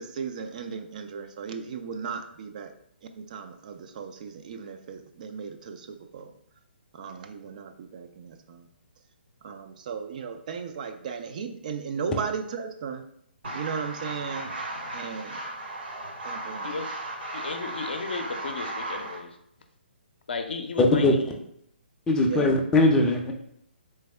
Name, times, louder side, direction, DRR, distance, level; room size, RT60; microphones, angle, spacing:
voice 1, 0.0-2.7 3.1-6.3 6.9-8.7 9.4-13.0 13.5-14.5 14.9-15.4 16.2-16.8 22.2-22.5, right 6 dB, 45° right, 7 dB, 0.4 m, -36 dB
sound 1, 13.4-19.2, right 2 dB, 65° right, 1.2 m, -35 dB
voice 2, 17.3-19.3 20.3-21.3, left 4 dB, 65° left, 5 dB, 0.5 m, -34 dB
voice 3, 20.8-21.1 22.1-23.3, left 2 dB, 10° left, 1 dB, 0.5 m, -20 dB
3.4 x 3.3 x 3.3 m, 0.73 s
figure-of-eight pair, 135°, 6 cm